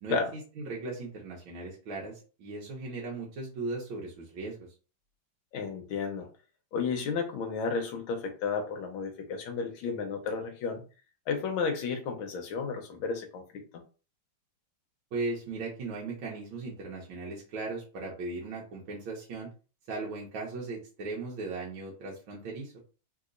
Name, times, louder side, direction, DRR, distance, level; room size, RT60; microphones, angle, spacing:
voice 1, 0.0-4.7 15.1-19.5 19.9-22.7, right 3 dB, 75° right, -3 dB, 1.6 m, -37 dB
voice 2, 5.5-6.3 6.7-10.8 11.3-13.8, left 5 dB, 75° left, 4 dB, 1.6 m, -32 dB
3.8 x 2.8 x 2.5 m, 0.35 s
omnidirectional pair, 2.3 m